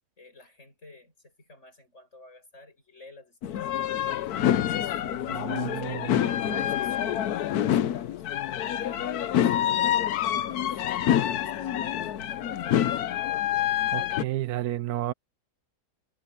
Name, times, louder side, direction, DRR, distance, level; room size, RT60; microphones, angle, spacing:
voice 1, 0.2-8.3 8.6-10.0 10.3-10.9 11.2-12.8, left 2 dB, 50° left, 7.8 m, -51 dB
sound 1, 3.4-14.2, left 11 dB, 90° left, 1.3 m, -27 dB
voice 2, 5.3-6.7 13.9-15.1, right 15 dB, 85° right, 1.1 m, -32 dB
omnidirectional pair, 1.6 m